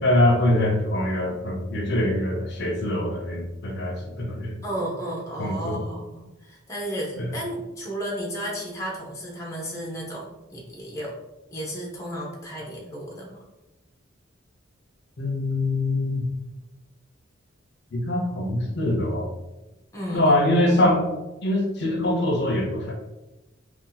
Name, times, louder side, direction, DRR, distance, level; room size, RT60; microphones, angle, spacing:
voice 1, 0.0-4.5 5.4-5.8 7.2-7.3 15.2-16.2 17.9-19.3 20.1-21.1 21.4-22.9, left 1 dB, 55° left, 0 dB, 0.6 m, -23 dB
voice 2, 4.6-11.1 11.5-13.4 19.9-20.3, equal, 15° left, -3 dB, 0.6 m, -33 dB
2.7 x 2.4 x 3.7 m, 1.0 s
head